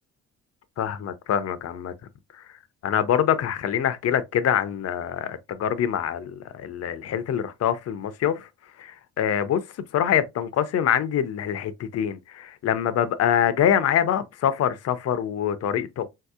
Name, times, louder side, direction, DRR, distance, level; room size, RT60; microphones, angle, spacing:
voice 1, 0.8-1.9 2.3-2.4 2.8-8.5 8.8-9.6 9.9-16.1, left 9 dB, 55° left, 0.6 m, -25 dB
3.9 x 2.7 x 2.3 m
cardioid pair, 90°, 30 cm